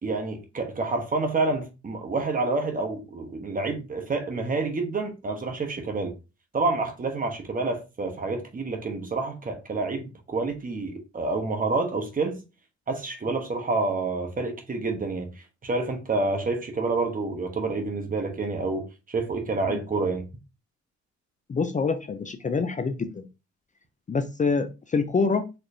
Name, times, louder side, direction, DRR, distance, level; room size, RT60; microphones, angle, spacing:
voice 1, 0.0-6.1 6.5-12.4 12.9-15.3 15.6-20.3, right 3 dB, 30° right, 1.1 m, -28 dB
voice 2, 21.5-23.3 24.1-25.5, left 4 dB, 25° left, 0.4 m, -26 dB
4.5 x 3.0 x 2.6 m
cardioid pair, 90°, 30 cm